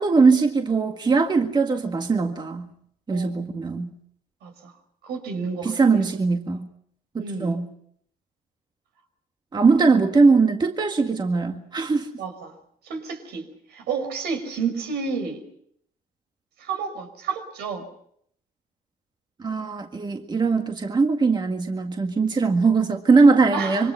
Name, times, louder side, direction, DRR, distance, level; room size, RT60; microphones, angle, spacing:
voice 1, 0.0-2.7 3.1-3.9 5.6-6.7 7.1-7.7 9.5-12.1 19.4-23.9, right 4 dB, 25° right, 4 dB, 1.9 m, -20 dB
voice 2, 4.4-4.7 5.0-5.7 7.2-7.5 9.8-9.9 12.2-12.5 12.8-15.4 16.6-17.8 23.5-23.9, right 5 dB, 75° right, 6 dB, 5.4 m, -30 dB
26.5 x 24.5 x 5.7 m, 0.68 s
cardioid pair, 110°, 17 cm